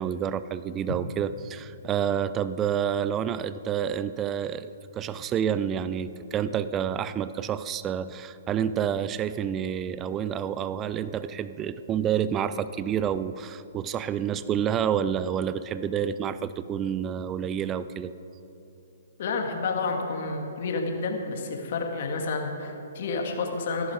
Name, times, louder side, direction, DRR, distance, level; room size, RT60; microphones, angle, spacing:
voice 1, 0.0-4.7 5.0-18.1, right 8 dB, 20° right, 14 dB, 0.4 m, -29 dB
voice 2, 19.2-23.9, left 3 dB, 55° left, 2 dB, 2.0 m, -30 dB
15.0 x 11.0 x 4.9 m, 2.8 s
hypercardioid pair, 140°, 0 cm